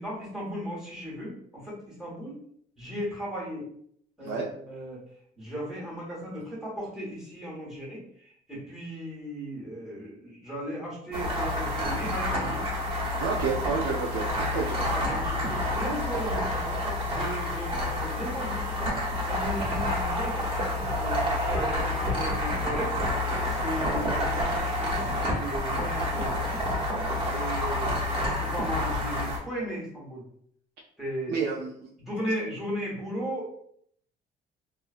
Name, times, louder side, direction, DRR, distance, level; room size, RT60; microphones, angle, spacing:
voice 1, 0.0-2.4 2.8-3.6 4.2-5.0 5.4-12.6 14.7-18.8 19.2-22.9 23.4-26.6 27.2-30.2 31.0-31.3 32.0-33.5, equal, ahead, -7 dB, 1.3 m, -36 dB
sound 1, 11.1-29.4, left 1 dB, 30° right, 0.9 m, -29 dB
voice 2, 13.2-14.3 14.5-14.9 31.3-31.7, right 5 dB, 75° right, -2 dB, 0.5 m, -29 dB
2.6 x 2.4 x 2.4 m, 0.65 s
cardioid pair, 110°, 17 cm